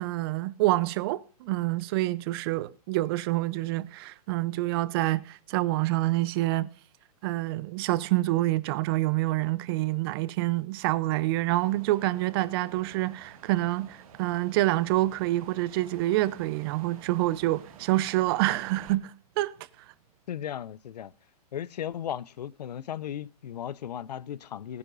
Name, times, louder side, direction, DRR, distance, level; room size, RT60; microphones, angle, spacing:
voice 1, 0.0-6.7 7.2-19.6, right 17 dB, 40° right, 0.6 m, -27 dB
sound 1, 11.6-19.0, right 7 dB, 60° right, 2.0 m, -50 dB
voice 2, 20.3-21.1 21.5-24.8, left 10 dB, 85° left, 0.6 m, -36 dB
20.0 x 9.7 x 2.6 m
hypercardioid pair, 145°, 20 cm